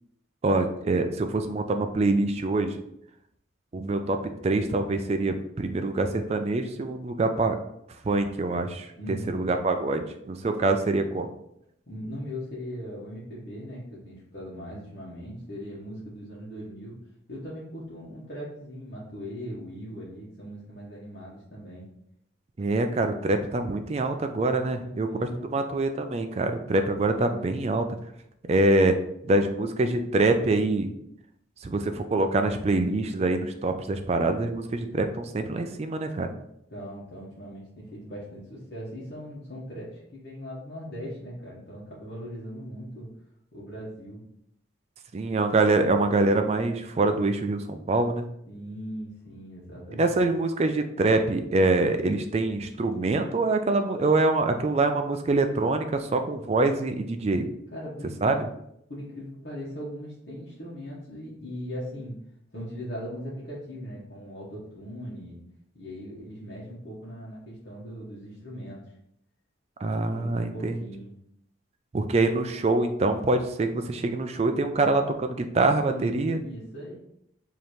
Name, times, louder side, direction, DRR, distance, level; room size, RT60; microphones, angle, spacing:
voice 1, 0.4-2.7 3.7-4.2 4.4-7.6 8.0-8.9 9.3-11.3 22.6-27.8 28.5-28.9 29.2-30.9 31.6-36.3 45.1-48.3 49.9-57.5 58.2-58.4 69.8-70.8 71.9-76.4, right 2 dB, 35° right, 7 dB, 0.3 m, -25 dB
voice 2, 9.0-9.5 11.9-17.0 17.3-21.9 24.7-25.5 36.7-43.1 43.5-44.2 48.5-50.2 57.7-58.4 58.9-62.2 62.5-65.4 65.7-68.9 70.1-71.1 75.9-76.9, equal, 55° left, -8 dB, 1.2 m, -39 dB
5.0 x 2.8 x 3.1 m, 0.76 s
head